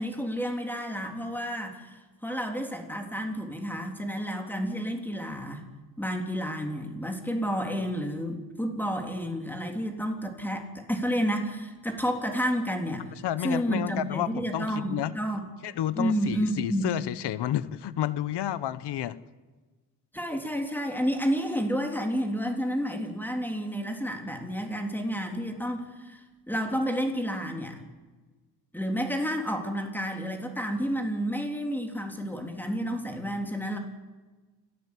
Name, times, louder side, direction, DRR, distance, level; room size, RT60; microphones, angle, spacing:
voice 1, 0.0-5.6 6.0-15.4 16.0-16.8 20.1-27.8 28.7-33.8, equal, 5° left, 3.4 m, -30 dB
voice 2, 13.2-15.1 15.6-19.2, left 12 dB, 75° left, 1.1 m, -30 dB
28.0 x 14.0 x 8.4 m
cardioid pair, 100°, 41 cm